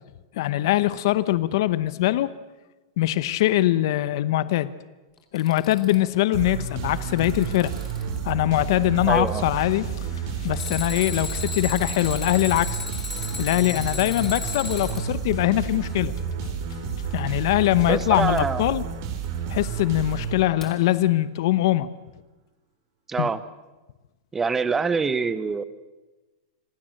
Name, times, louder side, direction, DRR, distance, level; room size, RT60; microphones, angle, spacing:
voice 1, 0.3-2.3 3.0-4.7 5.3-7.7 8.2-9.9 10.4-12.8 13.4-16.1 17.1-18.8 19.5-21.9 23.2-23.3, left 15 dB, 50° left, 16 dB, 0.9 m, -22 dB
Alarm, 5.2-6.2 6.8-8.2 10.5-15.1 18.4-18.5 20.6-20.7, left 4 dB, 10° left, 2.9 m, -35 dB
sound 1, 6.3-20.9, right 7 dB, 45° right, 3.3 m, -31 dB
voice 2, 9.1-9.4 17.9-18.8 23.1-23.4 24.3-25.6, right 5 dB, 10° right, 15 dB, 0.8 m, -25 dB
sound 2, 9.5-17.9, left 10 dB, 70° left, 1.6 m, -44 dB
26.5 x 17.0 x 7.7 m, 1.1 s
supercardioid pair, 170°, 3 cm